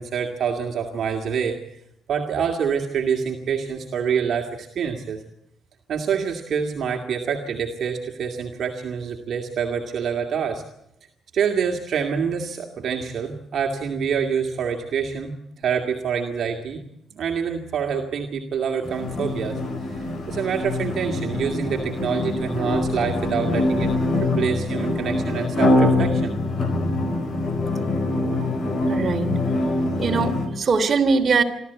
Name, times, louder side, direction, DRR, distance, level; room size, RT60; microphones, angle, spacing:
voice 1, 0.0-1.6 2.1-5.2 5.9-10.6 11.3-16.8 17.1-26.3, right 7 dB, 60° right, 2 dB, 2.3 m, -26 dB
sound 1, 18.8-30.5, left 2 dB, 50° left, 4.2 m, -24 dB
voice 2, 28.9-29.3 30.0-31.4, right 4 dB, 40° right, 3 dB, 3.2 m, -21 dB
25.5 x 13.5 x 8.3 m, 0.81 s
cardioid pair, 90°, 0 cm